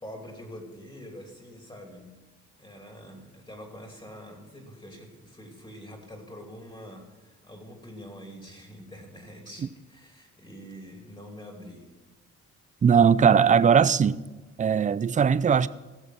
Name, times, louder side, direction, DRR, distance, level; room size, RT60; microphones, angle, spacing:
voice 1, 0.0-2.1 2.6-11.9, equal, 15° left, 2.8 m, -45 dB
voice 2, 12.8-14.2 14.6-15.7, right 7 dB, 25° right, 0.4 m, -19 dB
16.5 x 6.8 x 5.9 m
cardioid pair, 90°, 30 cm